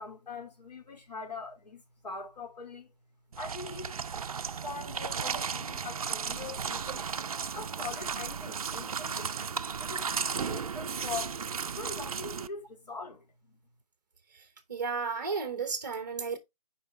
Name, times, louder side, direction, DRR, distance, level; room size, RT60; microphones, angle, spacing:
voice 1, 0.0-2.9 3.4-4.1 4.5-7.0 7.5-9.3 9.8-11.5 11.7-13.6, left 4 dB, 90° left, 2.7 m, -42 dB
sound 1, 3.3-12.5, right 6 dB, 60° right, 0.5 m, -35 dB
voice 2, 14.3-16.4, right 5 dB, 30° right, 1.2 m, -34 dB
6.7 x 4.8 x 3.4 m
hypercardioid pair, 180°, 21 cm